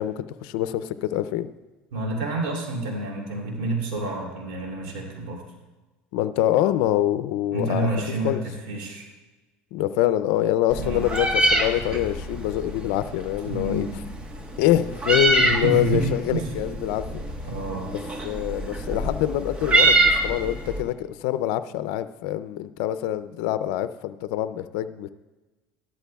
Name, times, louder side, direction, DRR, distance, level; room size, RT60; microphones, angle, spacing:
voice 1, 0.0-1.5 6.1-7.9 8.2-8.4 9.7-13.9 14.6-17.2 18.2-25.1, left 13 dB, 80° left, 12 dB, 0.5 m, -25 dB
voice 2, 1.9-5.4 7.5-9.1 10.8-11.0 13.5-14.0 15.4-16.5 17.4-17.9, right 2 dB, 90° right, -1 dB, 2.9 m, -28 dB
Meow, 10.7-20.8, right 2 dB, 25° right, 1.3 m, -25 dB
13.5 x 12.5 x 2.3 m, 1.2 s
supercardioid pair, 105°, 4 cm